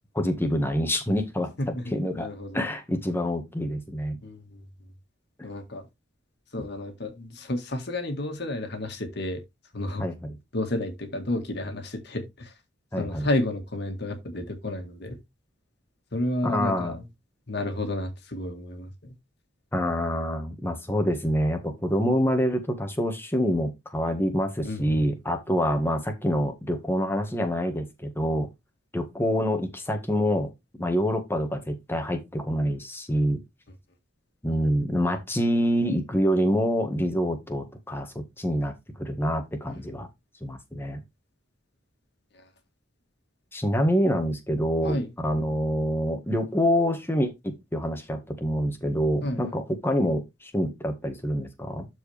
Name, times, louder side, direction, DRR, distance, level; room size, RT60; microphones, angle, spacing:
voice 1, 0.1-1.5 1.9-2.3 2.5-4.2 10.0-10.3 12.9-13.3 16.4-17.0 19.7-28.5 28.9-30.5 30.8-33.4 34.4-40.1 40.4-41.0 43.5-45.0 45.2-51.9, equal, 10° left, 1.6 m, -26 dB
voice 2, 1.6-2.6 4.2-4.6 5.4-5.9 6.5-9.4 9.7-10.0 10.5-12.5 13.0-15.2 16.1-17.1 17.5-19.2 24.6-25.0 42.3-42.5 44.8-45.1 49.2-49.5, left 1 dB, 60° left, 1.9 m, -31 dB
12.5 x 4.6 x 3.4 m
head